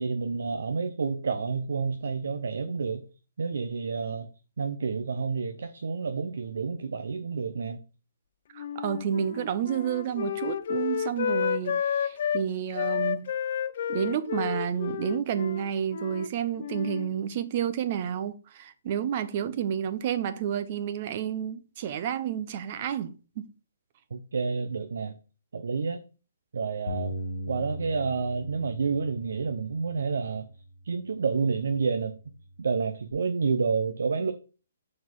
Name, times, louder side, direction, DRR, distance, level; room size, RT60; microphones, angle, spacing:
voice 1, 0.0-3.0 3.4-4.3 4.6-7.8 24.1-25.1 25.5-26.0 26.5-27.2 27.5-30.5 30.8-32.2 32.6-34.3, right 5 dB, 75° right, 0.7 m, -29 dB
voice 2, 8.5-13.3 13.9-23.5, right 9 dB, 30° right, 0.5 m, -30 dB
Wind instrument woodwind instrument, 8.6-12.4 12.7-16.3 16.6-17.1, left 8 dB, 40° left, 0.3 m, -31 dB
Bass guitar, 26.9-33.1, equal, 70° left, 1.1 m, -40 dB
7.2 x 4.2 x 4.6 m
hypercardioid pair, 175°, 0 cm